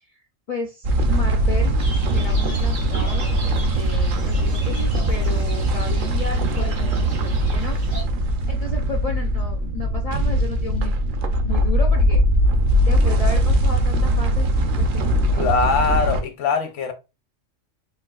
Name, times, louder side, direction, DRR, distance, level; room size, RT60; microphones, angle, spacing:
voice 1, 0.1-1.8 2.1-3.3 3.7-7.8 8.5-10.9 11.4-12.2 12.9-14.5 14.8-15.6, left 4 dB, 65° left, 0.3 m, -33 dB
sound 1, 0.8-16.2, right 1 dB, 60° right, 0.6 m, -20 dB
sound 2, 1.8-8.0, right 1 dB, 85° right, 1.6 m, -39 dB
voice 2, 15.3-16.9, left 5 dB, 80° left, 0.9 m, -22 dB
4.1 x 2.3 x 2.3 m
omnidirectional pair, 1.3 m